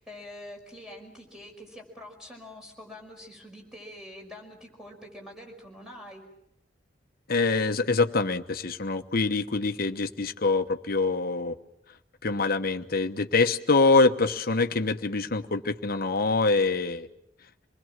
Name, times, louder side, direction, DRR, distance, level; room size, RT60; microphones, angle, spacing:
voice 1, 0.0-6.2, left 1 dB, 5° right, 1 dB, 5.4 m, -45 dB
voice 2, 7.3-11.5 12.2-17.1, left 3 dB, 55° left, 9 dB, 1.1 m, -25 dB
27.0 x 20.5 x 7.4 m, 0.78 s
head